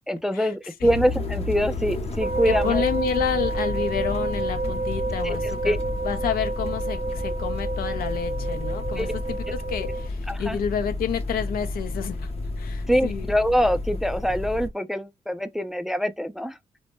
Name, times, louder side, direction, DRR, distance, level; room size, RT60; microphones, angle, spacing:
voice 1, 0.1-2.8 5.2-5.8 9.0-9.1 9.5-9.6 10.3-10.6 12.9-16.6, equal, 5° right, 0.3 m, -24 dB
sound 1, 0.8-14.7, left 2 dB, 40° left, 0.6 m, -31 dB
sound 2, 2.2-10.1, right 3 dB, 50° right, 0.6 m, -30 dB
voice 2, 2.5-5.8 6.0-12.3 12.6-13.3, left 8 dB, 80° left, 0.5 m, -30 dB
2.1 x 2.1 x 2.9 m
cardioid pair, 70°, 15 cm